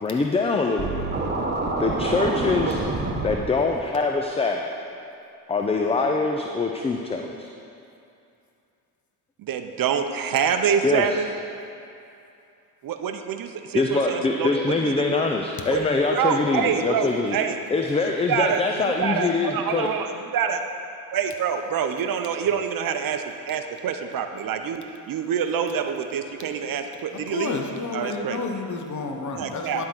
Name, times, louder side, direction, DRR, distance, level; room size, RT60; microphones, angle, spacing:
voice 1, 0.0-1.1 1.8-2.8 3.2-4.7 5.5-7.5 10.8-11.2 13.7-17.4 17.7-19.9, left 3 dB, 15° left, 2 dB, 0.4 m, -24 dB
Scratching (performance technique), 0.8-3.4, right 3 dB, 25° right, 1.1 m, -26 dB
voice 2, 9.4-11.3 12.8-15.3 15.7-15.8 16.1-17.6 18.0-20.6 21.1-27.6 27.9-28.4 29.3-29.8, right 7 dB, 55° right, 6 dB, 0.7 m, -26 dB
voice 3, 27.3-29.8, left 4 dB, 45° left, 3 dB, 1.1 m, -31 dB
11.5 x 3.8 x 6.0 m, 2.6 s
supercardioid pair, 75°, 42 cm